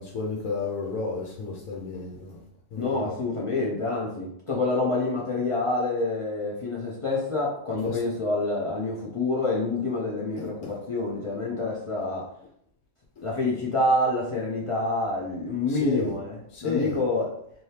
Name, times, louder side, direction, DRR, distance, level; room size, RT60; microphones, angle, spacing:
voice 1, 0.0-2.4 2.7-3.1 7.8-8.0 10.4-10.7 15.7-16.1 16.5-17.0, left 4 dB, 80° left, -2 dB, 1.0 m, -32 dB
voice 2, 2.8-12.3 13.2-17.3, left 2 dB, 60° left, -4 dB, 0.3 m, -27 dB
3.2 x 2.6 x 2.7 m, 0.70 s
omnidirectional pair, 1.4 m